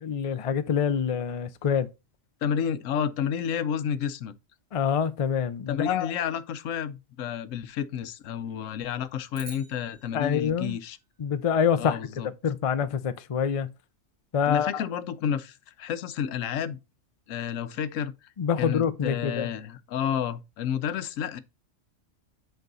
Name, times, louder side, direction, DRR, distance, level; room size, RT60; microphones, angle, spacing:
voice 1, 0.0-1.9 4.7-6.1 10.1-10.8 11.2-12.0 12.4-13.7 14.3-14.8 18.4-19.5, left 7 dB, 45° left, 0.5 m, -26 dB
voice 2, 2.4-4.3 5.7-11.0 11.8-12.3 14.5-16.8 17.3-18.3 18.6-21.4, left 8 dB, 85° left, 1.0 m, -30 dB
sound 1, 9.3-11.8, right 1 dB, 25° right, 2.2 m, -49 dB
8.0 x 4.5 x 3.9 m
omnidirectional pair, 1.3 m